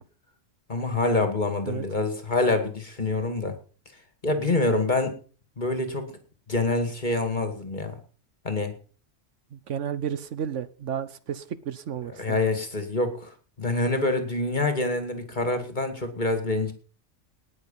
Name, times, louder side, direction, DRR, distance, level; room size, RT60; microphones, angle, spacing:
voice 1, 0.7-3.5 4.2-5.2 5.6-6.2 6.5-8.0 8.4-8.7 12.2-16.7, left 2 dB, 35° left, 2.4 m, -26 dB
voice 2, 9.5-12.4, right 8 dB, 70° right, 1.1 m, -32 dB
19.0 x 6.6 x 5.6 m
omnidirectional pair, 1.3 m